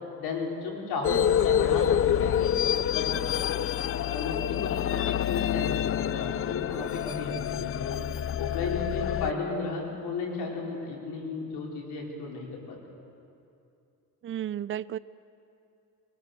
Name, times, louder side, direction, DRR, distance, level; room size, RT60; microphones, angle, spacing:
voice 1, 0.2-2.5 2.9-3.2 4.0-8.0 8.4-12.8, left 4 dB, 90° left, -1 dB, 4.9 m, -34 dB
sound 1, 1.0-9.3, left 10 dB, 40° left, 0.4 m, -27 dB
voice 2, 14.2-15.0, right 11 dB, 35° right, 17 dB, 0.5 m, -33 dB
22.5 x 21.5 x 6.9 m, 2.7 s
cardioid pair, 105°, 38 cm